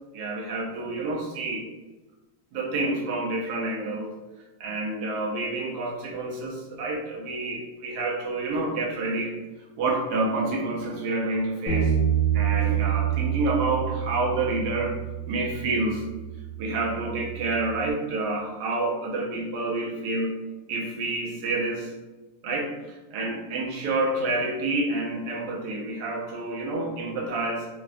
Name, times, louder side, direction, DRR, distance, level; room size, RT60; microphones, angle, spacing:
voice 1, 0.1-1.7 2.5-4.1 4.6-9.3 9.8-11.9 12.3-15.0 15.3-16.0 16.6-20.3 20.7-21.9 22.4-22.7 23.1-27.7, right 2 dB, 75° right, -1 dB, 1.2 m, -28 dB
Bass guitar, 11.7-17.9, right 9 dB, 75° left, 0.7 m, -28 dB
3.3 x 2.1 x 2.5 m, 1.1 s
omnidirectional pair, 1.8 m